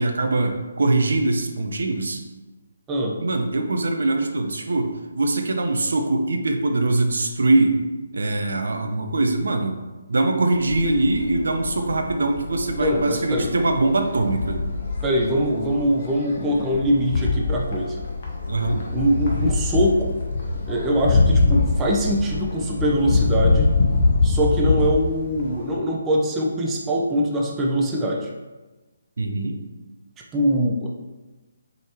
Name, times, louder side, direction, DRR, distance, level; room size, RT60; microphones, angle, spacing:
voice 1, 0.0-2.2 3.2-7.8 8.1-9.8 10.1-14.6 18.5-18.9 29.2-29.6, right 2 dB, 60° right, 5 dB, 0.5 m, -22 dB
sound 1, 10.5-25.8, left 3 dB, 40° left, 0.7 m, -24 dB
voice 2, 12.8-13.5 15.0-18.0 18.9-20.2 20.7-23.7 24.2-28.3 30.3-30.9, equal, 15° right, -2 dB, 0.5 m, -22 dB
5.0 x 2.6 x 2.9 m, 1.2 s
figure-of-eight pair, 140°, 0 cm